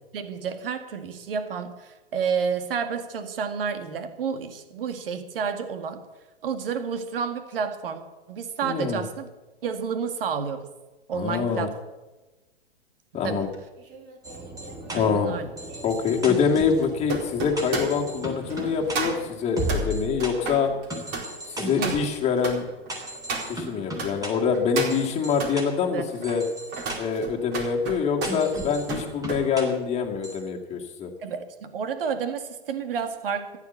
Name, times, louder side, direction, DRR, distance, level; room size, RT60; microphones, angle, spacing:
voice 1, 0.1-6.0 6.4-8.0 8.3-9.3 9.6-10.7 11.1-11.7 13.2-13.5 14.9-15.5 21.8-22.0 25.8-26.1 31.2-33.6, right 6 dB, 60° right, 8 dB, 2.0 m, -30 dB
voice 2, 8.6-9.0 11.1-11.7 13.1-13.5 14.9-15.3 15.8-20.7 21.5-22.6 23.5-26.4 27.0-31.1, left 6 dB, 20° left, 1 dB, 2.2 m, -25 dB
sound 1, 13.5-24.1 24.5-25.6 26.1-29.5 29.8-30.1, right 4 dB, 35° right, 4.4 m, -35 dB
sound 2, 14.2-20.3 20.9-22.1 22.9-24.3 24.9-25.6 26.2-27.0 28.2-29.6 30.2-30.4, right 1 dB, 10° right, 3.4 m, -35 dB
14.5 x 11.0 x 7.0 m, 1.1 s
figure-of-eight pair, 115°, 31 cm